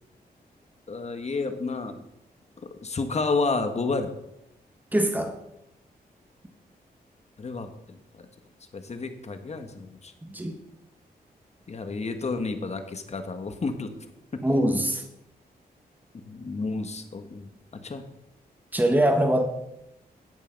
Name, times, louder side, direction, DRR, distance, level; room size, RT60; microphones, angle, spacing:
voice 1, 0.9-2.0 2.8-4.1 7.4-8.3 8.7-10.1 11.7-13.9 14.3-14.4 16.1-18.0, left 3 dB, 45° left, 7 dB, 1.4 m, -31 dB
voice 2, 4.9-5.3 10.3-10.5 14.4-15.0 18.7-19.4, right 1 dB, 10° right, 5 dB, 1.5 m, -22 dB
11.0 x 8.4 x 5.3 m, 0.84 s
wide cardioid pair, 105°, 16 cm